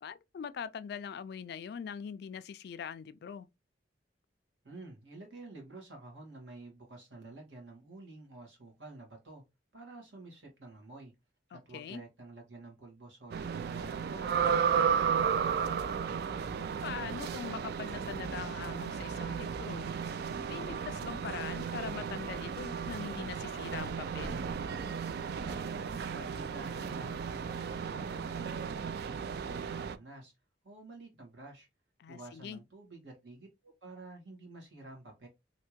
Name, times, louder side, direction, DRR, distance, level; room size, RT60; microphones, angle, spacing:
voice 1, 0.0-3.5 11.5-12.0 16.5-19.9 20.5-24.4 32.0-32.6, left 7 dB, 60° left, 0.3 m, -42 dB
voice 2, 4.6-9.4 9.7-11.1 11.5-15.7 25.4-30.3 30.6-31.7 32.1-35.3, right 2 dB, 80° right, 1.6 m, -50 dB
sound 1, 13.3-30.0, right 7 dB, 55° right, 0.3 m, -34 dB
3.3 x 2.8 x 3.0 m
head